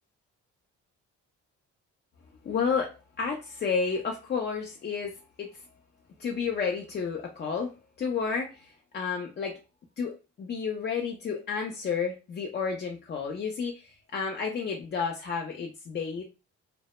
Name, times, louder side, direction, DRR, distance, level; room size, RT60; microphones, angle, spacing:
voice 1, 2.4-5.6 6.2-9.6 10.0-16.2, left 5 dB, 35° left, 0.4 m, -31 dB
2.0 x 2.0 x 2.9 m
cardioid pair, 90°, 30 cm